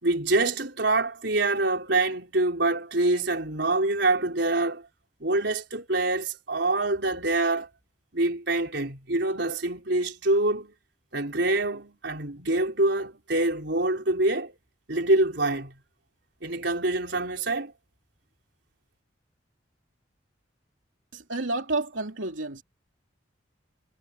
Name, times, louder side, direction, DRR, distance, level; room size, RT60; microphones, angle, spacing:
voice 1, 0.0-4.9 5.2-7.7 8.1-10.7 11.1-14.5 14.9-15.7 16.4-17.7, right 2 dB, 65° right, 4.5 m, -25 dB
voice 2, 21.1-22.6, right 2 dB, 90° right, 3.2 m, -30 dB
head